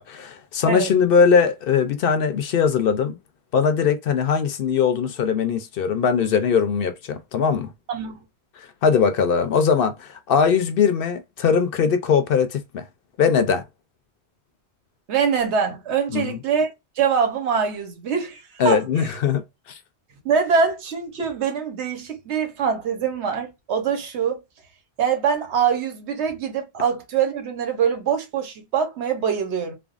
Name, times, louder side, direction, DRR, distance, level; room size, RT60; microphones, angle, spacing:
voice 1, 0.0-3.2 3.5-7.7 8.6-12.8 13.2-13.6 16.1-16.4 18.6-19.4 19.7-19.8, left 6 dB, 65° left, 0.7 m, -20 dB
voice 2, 7.9-8.2 15.1-19.1 20.2-24.4 25.0-29.7, right 6 dB, 90° right, 1.1 m, -24 dB
3.4 x 2.0 x 2.4 m
omnidirectional pair, 1.1 m